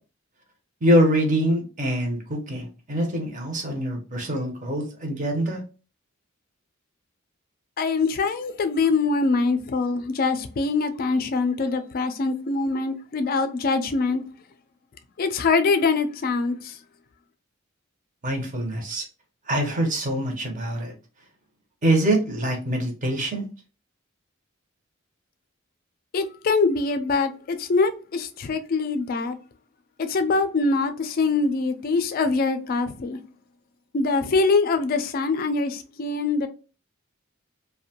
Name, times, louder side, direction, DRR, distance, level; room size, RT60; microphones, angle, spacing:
voice 1, 0.8-5.6 18.2-19.1 19.5-20.9 21.8-23.5, right 1 dB, 40° right, 0.6 m, -24 dB
voice 2, 7.8-14.2 15.2-16.7 26.1-29.4 30.1-33.2 33.9-36.5, left 4 dB, 45° left, 0.3 m, -23 dB
2.5 x 2.1 x 2.7 m
head